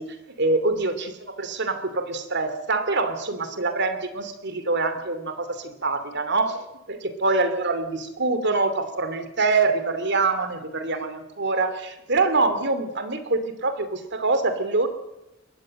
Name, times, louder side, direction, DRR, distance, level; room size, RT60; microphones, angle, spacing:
voice 1, 0.0-14.9, right 3 dB, 60° right, 10 dB, 2.7 m, -25 dB
22.0 x 17.0 x 7.7 m, 0.92 s
head